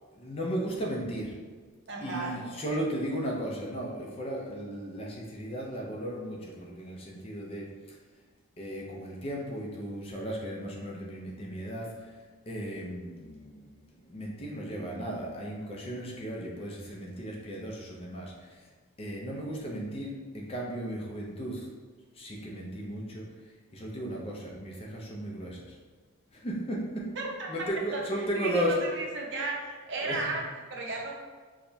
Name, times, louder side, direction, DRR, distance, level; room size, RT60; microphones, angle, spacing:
voice 1, 0.1-1.4 2.0-7.7 8.6-12.1 12.5-13.7 14.0-18.6 19.0-21.7 22.2-23.3 23.7-25.8 26.3-27.1 27.5-28.8 30.0-30.3, equal, 25° left, -2 dB, 0.5 m, -35 dB
voice 2, 1.9-2.8 27.1-27.5 27.9-30.4 30.7-31.2, right 3 dB, 55° right, -1 dB, 0.6 m, -35 dB
4.7 x 2.1 x 2.7 m, 1.4 s
head